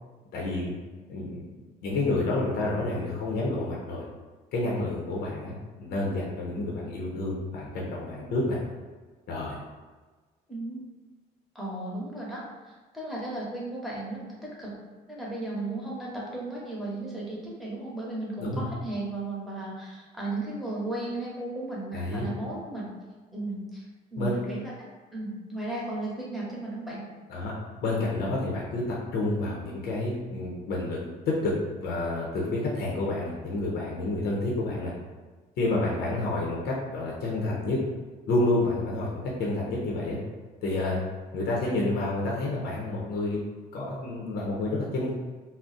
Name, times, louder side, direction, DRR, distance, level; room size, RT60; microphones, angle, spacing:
voice 1, 0.3-0.7 1.1-1.4 1.8-4.0 4.5-8.6 9.3-9.6 18.4-18.7 21.9-22.3 24.2-24.3 27.3-27.5 27.8-34.9 35.6-37.8 38.3-39.1 39.4-40.2 40.6-41.0 41.3-43.4 43.7-45.1, left 2 dB, 70° left, -3 dB, 0.6 m, -29 dB
voice 2, 10.5-10.8 11.5-14.7 15.1-22.9 23.3-27.0, right 2 dB, ahead, -6 dB, 0.9 m, -35 dB
2.4 x 2.0 x 3.9 m, 1.4 s
cardioid pair, 110°, 17 cm